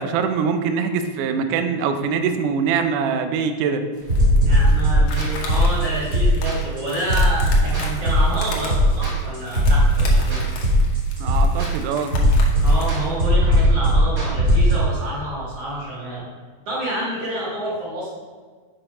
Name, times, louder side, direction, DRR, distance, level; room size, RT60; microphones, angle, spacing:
voice 1, 0.0-3.8 11.2-12.1, right 6 dB, 80° right, 7 dB, 1.9 m, -23 dB
sound 1, 3.9-13.1, left 3 dB, 65° left, 2.0 m, -37 dB
sound 2, 4.1-14.7, equal, 30° right, 1.9 m, -18 dB
voice 2, 4.4-10.4 12.6-16.3 16.7-18.1, right 1 dB, 45° right, -7 dB, 2.5 m, -28 dB
7.7 x 4.4 x 4.9 m, 1.5 s
omnidirectional pair, 4.3 m